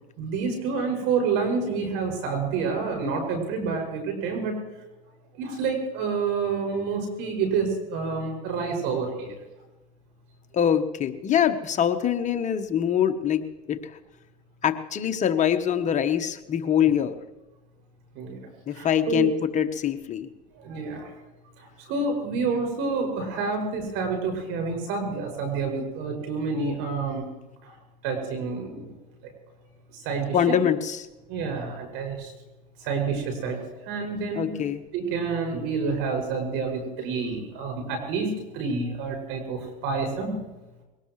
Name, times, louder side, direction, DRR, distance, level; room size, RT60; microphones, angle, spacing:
voice 1, 0.2-4.6 5.3-9.4 16.8-16.9 18.1-18.4 18.7-19.3 20.5-21.1 21.6-27.3 27.6-27.8 28.0-28.9 29.2-29.3 29.9-30.6 31.3-32.3 32.8-34.5 34.9-40.3, right 4 dB, 65° right, 4 dB, 6.5 m, -28 dB
voice 2, 10.5-13.8 14.6-17.1 18.7-20.3 30.3-31.1 34.3-34.8, left 9 dB, 35° left, 8 dB, 1.1 m, -24 dB
22.5 x 18.5 x 3.2 m, 1.1 s
supercardioid pair, 105°, 21 cm